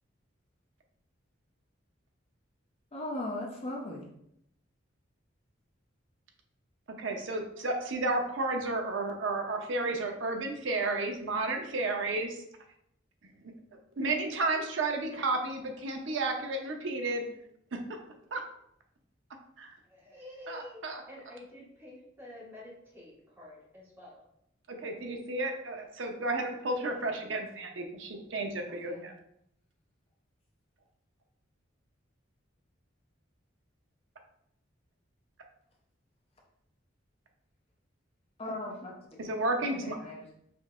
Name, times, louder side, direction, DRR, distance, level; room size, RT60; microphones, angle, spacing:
voice 1, 2.9-4.0 28.8-29.1 38.4-39.3 39.6-40.3, left 1 dB, 30° left, -2 dB, 0.6 m, -38 dB
voice 2, 7.0-12.4 14.0-17.2 18.3-18.4 19.6-19.7 20.5-21.0 24.7-29.1 39.2-40.1, right 2 dB, 70° right, 3 dB, 0.6 m, -32 dB
voice 3, 19.9-20.8 21.1-24.2, left 1 dB, 10° right, -7 dB, 1.4 m, -49 dB
5.0 x 2.7 x 2.4 m, 0.75 s
head